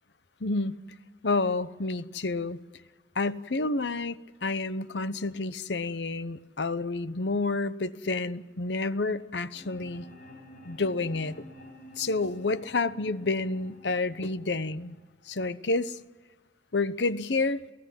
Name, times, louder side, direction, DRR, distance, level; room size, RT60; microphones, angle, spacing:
voice 1, 0.4-0.8 1.2-2.6 3.1-10.0 10.6-11.5 12.0-15.0 15.2-16.0 16.7-17.6, left 3 dB, 85° left, 0.9 m, -29 dB
sound 1, 9.5-15.5, left 1 dB, 55° left, 6.8 m, -50 dB
29.0 x 17.0 x 7.6 m
head